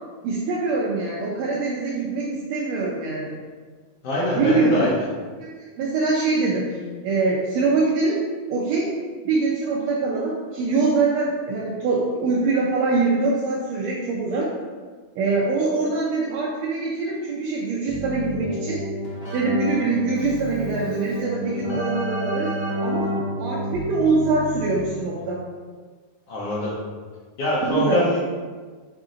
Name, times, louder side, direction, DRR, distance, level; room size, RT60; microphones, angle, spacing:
voice 1, 0.2-3.4 4.4-4.9 5.4-6.8 7.0-8.2 8.5-8.9 9.3-14.5 15.2-18.8 19.3-22.5 22.8-25.5 27.6-28.0, right 3 dB, 80° right, -4 dB, 1.6 m, -23 dB
voice 2, 4.0-4.9 26.3-26.7 27.4-28.2, left 1 dB, 65° left, -7 dB, 1.6 m, -23 dB
Keyboard (musical), 17.9-25.1, right 1 dB, 90° left, 0.6 m, -30 dB
5.7 x 3.7 x 2.5 m, 1.5 s
omnidirectional pair, 3.6 m